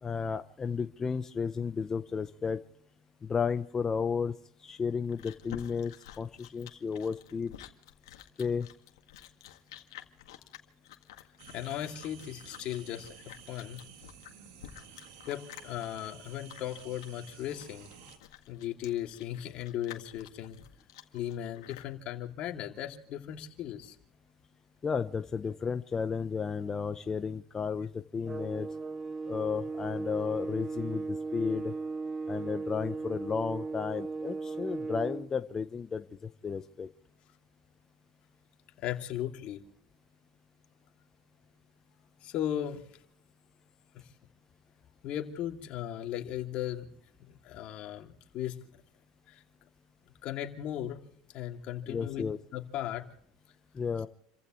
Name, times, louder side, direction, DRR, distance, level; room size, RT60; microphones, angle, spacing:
voice 1, 0.0-2.6 3.3-4.4 4.6-7.5 8.4-8.7 24.8-28.7 29.3-31.7 32.3-36.0 36.4-36.9 51.9-52.4 53.7-54.1, left 6 dB, 20° left, 9 dB, 0.8 m, -33 dB
Chewing mastication, 4.7-21.9, left 13 dB, 80° left, 1.9 m, -51 dB
sound 1, 11.4-18.2, right 8 dB, 70° right, 2.9 m, -53 dB
voice 2, 11.5-13.1 13.5-13.8 15.3-17.9 18.5-20.6 21.1-24.0 38.8-39.6 42.2-42.8 45.0-46.9 47.3-48.6 49.3-49.4 50.2-51.0 51.3-52.2 52.5-53.0, left 11 dB, 50° left, 3 dB, 2.6 m, -37 dB
sound 2, 28.3-35.3, right 4 dB, 20° right, 0.7 m, -37 dB
29.5 x 15.5 x 3.2 m, 0.64 s
supercardioid pair, 115°, 2 cm